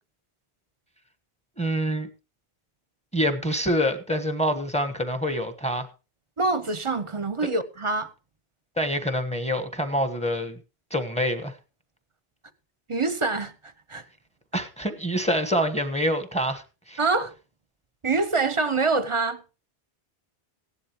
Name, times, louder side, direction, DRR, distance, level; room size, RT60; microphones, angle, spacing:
voice 1, 1.6-2.1 3.1-5.9 8.8-10.6 10.9-11.5 14.5-17.0, equal, 5° left, 1.2 m, -26 dB
voice 2, 6.4-8.1 12.9-13.5 13.9-14.0 17.0-17.3 18.0-19.4, right 3 dB, 30° right, 0.8 m, -25 dB
17.0 x 11.0 x 3.0 m
omnidirectional pair, 1.1 m